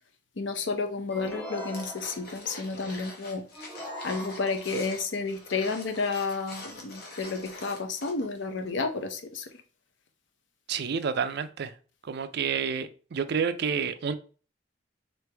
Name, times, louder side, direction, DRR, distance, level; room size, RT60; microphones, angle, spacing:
voice 1, 0.4-3.4 4.0-9.5, left 4 dB, 80° left, 0.7 m, -31 dB
sound 1, 1.1-2.4 3.5-4.8, equal, 5° left, 1.4 m, -41 dB
sound 2, 1.7-8.4 8.6-8.7, left 2 dB, 60° left, 1.2 m, -44 dB
voice 2, 10.7-11.7 12.0-14.1, right 6 dB, 60° right, 0.4 m, -29 dB
4.0 x 3.2 x 3.3 m
head